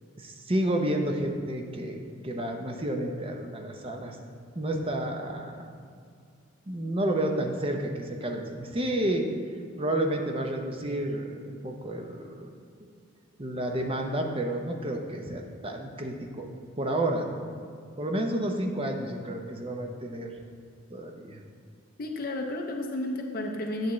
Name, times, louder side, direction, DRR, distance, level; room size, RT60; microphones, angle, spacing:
voice 1, 0.2-4.2 4.5-5.9 6.7-9.3 9.8-12.5 13.4-16.5 16.8-17.5 18.0-20.3 20.9-21.4, right 1 dB, 25° right, 3 dB, 0.6 m, -30 dB
voice 2, 22.0-23.9, left 1 dB, 45° left, 2 dB, 0.5 m, -32 dB
9.1 x 7.2 x 3.1 m, 2.2 s
head